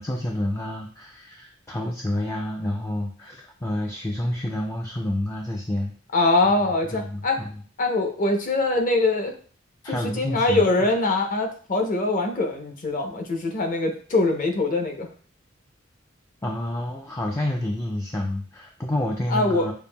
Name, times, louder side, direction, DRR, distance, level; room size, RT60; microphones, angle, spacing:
voice 1, 0.0-5.9 6.9-7.6 9.8-10.7 16.4-19.7, left 1 dB, 15° left, 1 dB, 0.3 m, -29 dB
voice 2, 6.1-7.4 7.8-9.3 9.9-15.1 19.3-19.7, left 2 dB, 45° left, 3 dB, 0.7 m, -23 dB
6.7 x 2.6 x 2.2 m, 0.44 s
head